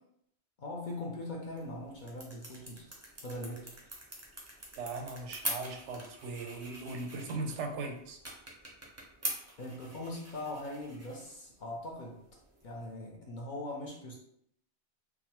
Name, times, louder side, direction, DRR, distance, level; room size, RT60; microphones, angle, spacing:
voice 1, 0.6-2.9 3.2-3.7 9.6-12.2 12.6-14.2, left 1 dB, 50° left, -2 dB, 0.7 m, -41 dB
sound 1, 1.4-12.9, right 1 dB, 20° right, 0.4 m, -45 dB
voice 2, 4.8-8.2, right 3 dB, 85° right, 3 dB, 0.9 m, -39 dB
3.5 x 2.0 x 2.9 m, 0.70 s
omnidirectional pair, 1.2 m